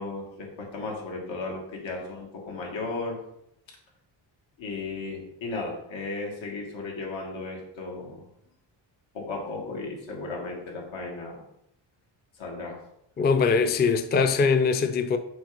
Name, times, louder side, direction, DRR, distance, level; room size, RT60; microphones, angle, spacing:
voice 1, 0.0-3.2 4.6-8.2 9.1-11.4 12.4-12.8, left 3 dB, 85° left, 2.2 m, -35 dB
voice 2, 13.2-15.2, left 5 dB, 25° left, 0.4 m, -22 dB
6.1 x 4.6 x 5.2 m
cardioid pair, 140°, 45 cm